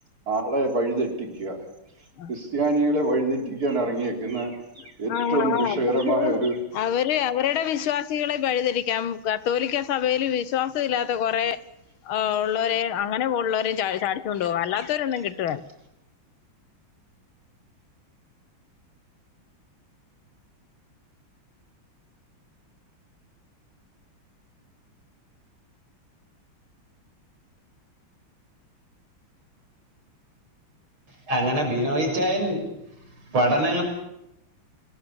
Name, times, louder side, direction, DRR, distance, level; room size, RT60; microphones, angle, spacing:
voice 1, 0.3-1.6 2.3-6.6, right 2 dB, 45° right, 4.3 m, -25 dB
voice 2, 5.1-6.4 6.7-11.6 12.1-15.6, left 9 dB, 80° left, 1.9 m, -25 dB
voice 3, 31.3-32.6 33.3-33.8, right 1 dB, 80° right, 7.4 m, -23 dB
29.0 x 19.5 x 7.1 m
omnidirectional pair, 2.2 m